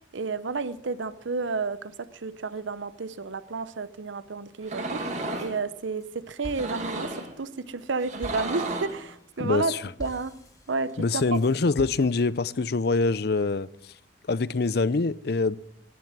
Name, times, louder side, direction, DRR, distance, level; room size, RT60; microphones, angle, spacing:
voice 1, 0.1-10.4 10.7-11.4, right 4 dB, 75° right, 0.7 m, -31 dB
sound 1, 4.6-5.6 6.4-7.3 8.0-9.0, right 2 dB, 35° right, 2.3 m, -33 dB
sound 2, 5.6-6.1 6.4-12.5, equal, 20° left, 3.0 m, -45 dB
voice 2, 9.4-9.9 11.0-13.7 14.3-15.6, left 3 dB, 55° left, 0.5 m, -24 dB
17.5 x 11.0 x 7.4 m
head